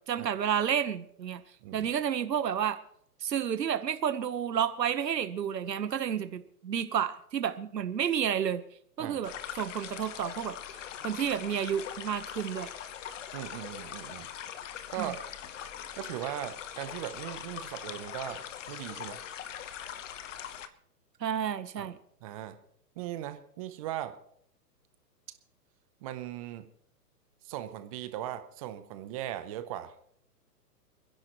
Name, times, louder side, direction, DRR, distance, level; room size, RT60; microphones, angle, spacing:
voice 1, 0.0-1.4 1.7-2.8 3.2-8.6 9.0-9.3 9.6-10.5 11.0-12.7 15.0-15.1 21.2-22.0, right 8 dB, 85° right, 11 dB, 1.2 m, -30 dB
voice 2, 9.0-9.3 11.0-11.1 13.3-14.3 14.9-15.2 16.0-18.4 18.7-19.2 21.8-21.9 22.2-22.6 23.0-24.1 26.0-26.6 27.4-29.9, right 12 dB, 20° right, 11 dB, 0.7 m, -38 dB
sound 1, 9.2-20.7, left 9 dB, 50° left, 1.1 m, -42 dB
29.0 x 10.5 x 3.1 m, 0.68 s
hypercardioid pair, 145°, 49 cm